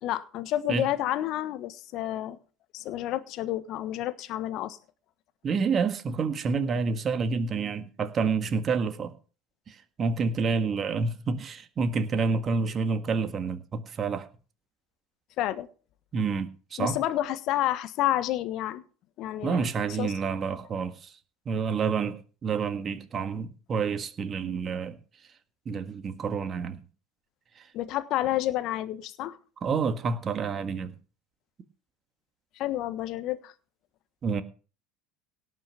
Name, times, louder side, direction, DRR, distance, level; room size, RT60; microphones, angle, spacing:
voice 1, 0.0-2.4 2.7-4.8 15.4-15.7 16.8-18.8 19.2-19.7 20.0-20.1 27.7-29.4 32.6-33.5, left 13 dB, 55° left, 1.3 m, -29 dB
voice 2, 5.4-9.1 9.7-14.3 16.1-17.0 19.4-21.1 21.4-25.0 25.6-26.8 27.6-27.7 29.6-30.9 34.2-34.4, right 5 dB, 35° right, 1.6 m, -28 dB
17.5 x 6.1 x 5.8 m
hypercardioid pair, 75°, 0 cm